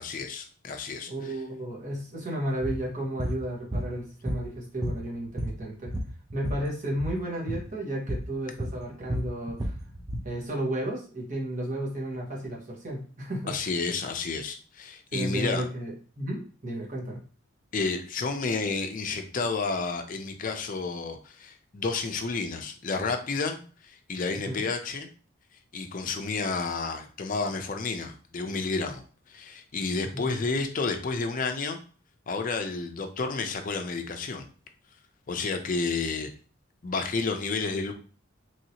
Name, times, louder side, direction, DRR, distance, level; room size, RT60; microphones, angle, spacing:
voice 1, 0.0-1.4 13.5-15.6 17.7-25.1 25.7-31.8 32.3-34.5 35.3-36.3 36.8-37.9, left 4 dB, 40° left, 6 dB, 0.4 m, -31 dB
voice 2, 1.1-5.9 6.3-9.7 10.2-13.5 15.1-17.2 24.4-24.7 30.1-30.4, right 1 dB, 35° right, -3 dB, 1.2 m, -33 dB
sound 1, 2.6-2.8 3.2-3.4 3.7-4.6 4.8-6.6 6.9-7.2 7.5-7.7 8.1-8.3 8.6-10.3, equal, 20° right, 0.4 m, -32 dB
3.1 x 2.8 x 2.8 m, 0.40 s
head